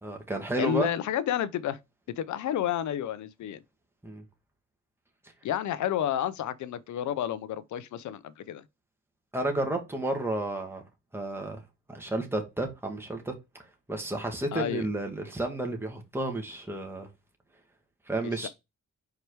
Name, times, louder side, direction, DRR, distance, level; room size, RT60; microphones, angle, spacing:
voice 1, 0.0-0.9 4.0-4.2 9.3-10.8 11.1-11.6 11.9-13.3 13.9-17.1 18.1-18.5, right 2 dB, 10° right, 1.9 m, -31 dB
voice 2, 0.6-1.8 2.2-3.6 5.4-8.6 14.5-14.9 18.4-18.5, left 10 dB, 70° left, 0.7 m, -30 dB
4.8 x 4.6 x 4.7 m
cardioid pair, 65°, 30 cm